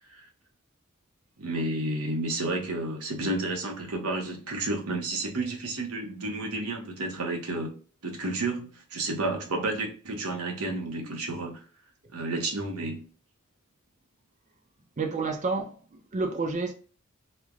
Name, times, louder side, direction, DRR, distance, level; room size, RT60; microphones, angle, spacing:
voice 1, 1.4-11.6 12.1-13.1, right 2 dB, 80° right, 0.9 m, -31 dB
voice 2, 15.0-16.7, right 3 dB, 35° right, 0.5 m, -30 dB
3.1 x 2.1 x 2.4 m
head